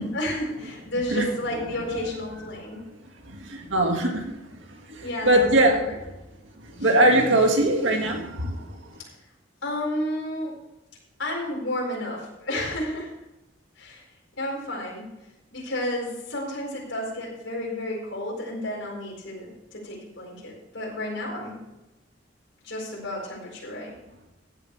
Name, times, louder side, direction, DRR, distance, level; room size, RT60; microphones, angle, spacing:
voice 1, 0.1-2.8 5.0-6.0 6.8-6.9 9.6-10.5 11.2-13.1 13.8-14.0 14.4-15.1 15.5-21.6 22.6-23.9, left 1 dB, 75° left, -3 dB, 4.6 m, -31 dB
voice 2, 3.3-4.3 4.7-5.8 6.6-8.8, right 1 dB, 75° right, 3 dB, 1.9 m, -22 dB
15.5 x 9.3 x 3.3 m, 1.0 s
head